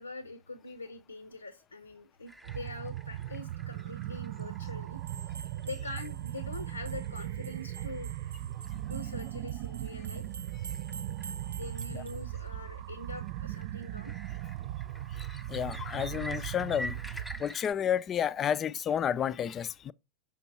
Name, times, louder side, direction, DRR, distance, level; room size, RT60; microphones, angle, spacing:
voice 1, 0.0-5.0 5.6-8.1 8.8-10.3 11.5-14.1, left 2 dB, 80° left, 0.7 m, -43 dB
sound 1, 2.3-17.7, equal, ahead, 0.8 m, -49 dB
sound 2, 2.4-17.4, right 13 dB, 45° right, 0.3 m, -38 dB
sound 3, 5.0-12.2, right 5 dB, 70° right, 0.7 m, -49 dB
voice 2, 15.5-17.0 17.4-19.9, left 9 dB, 25° left, 0.4 m, -31 dB
5.9 x 5.5 x 4.2 m
figure-of-eight pair, 90°, 0 cm